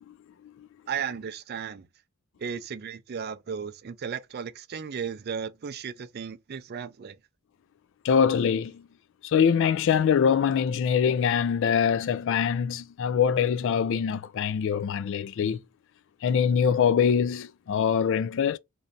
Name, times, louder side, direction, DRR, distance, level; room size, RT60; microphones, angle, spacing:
voice 1, 0.9-1.9 2.4-7.2, right 7 dB, 45° right, 0.4 m, -35 dB
voice 2, 8.0-8.8 9.2-15.6 16.2-18.6, left 7 dB, 55° left, 0.3 m, -24 dB
3.1 x 2.6 x 3.9 m
head